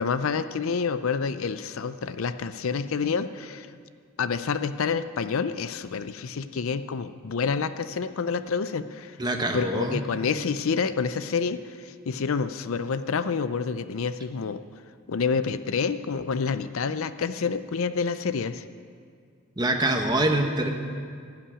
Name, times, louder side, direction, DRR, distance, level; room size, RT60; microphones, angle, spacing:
voice 1, 0.0-3.7 4.2-9.2 9.5-14.6 15.1-18.6, left 5 dB, 65° left, 12 dB, 0.5 m, -28 dB
voice 2, 9.2-10.0 19.6-20.7, right 1 dB, 20° right, 3 dB, 1.1 m, -25 dB
15.5 x 6.0 x 9.9 m, 2.1 s
head